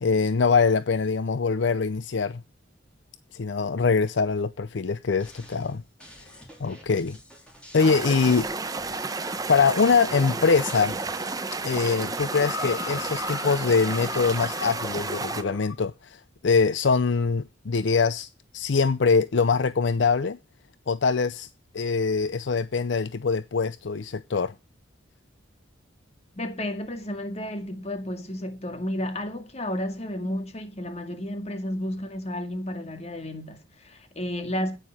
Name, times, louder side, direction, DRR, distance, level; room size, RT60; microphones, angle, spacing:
voice 1, 0.0-2.4 3.3-5.8 6.6-7.2 7.7-8.5 9.5-11.0 11.6-20.4 20.9-21.5 21.7-24.5, left 5 dB, 65° left, 0.5 m, -23 dB
sound 1, 5.2-15.6, equal, 5° left, 3.3 m, -49 dB
sound 2, 7.8-15.4, right 3 dB, 20° right, 0.8 m, -32 dB
sound 3, 12.2-15.8 16.6-16.7, left 6 dB, 90° left, 0.8 m, -38 dB
voice 2, 26.3-34.8, left 1 dB, 35° left, 2.0 m, -32 dB
9.7 x 9.2 x 6.2 m
head